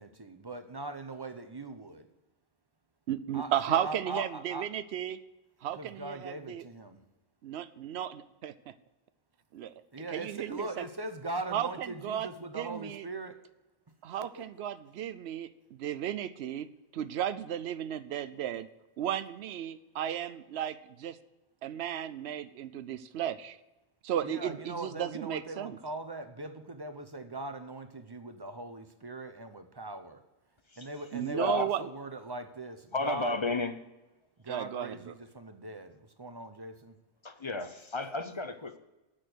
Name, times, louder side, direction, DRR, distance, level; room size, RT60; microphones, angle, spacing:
voice 1, 0.0-2.1 3.3-4.7 5.7-7.0 9.9-13.4 14.2-14.4 24.2-30.2 30.8-33.4 34.4-37.0, right 2 dB, 25° right, 8 dB, 0.7 m, -40 dB
voice 2, 3.1-5.2 5.6-6.7 7.4-8.7 9.5-9.7 10.1-10.8 11.5-12.3 12.5-13.1 14.0-16.7 16.9-18.7 19.0-21.2 21.6-23.6 24.0-25.8 31.1-31.9 34.5-35.1, right 10 dB, 80° right, 14 dB, 0.9 m, -34 dB
voice 3, 31.3-31.7 32.9-33.7 37.2-38.8, left 3 dB, 35° left, 9 dB, 0.5 m, -32 dB
8.8 x 6.4 x 7.8 m, 1.0 s
omnidirectional pair, 1.1 m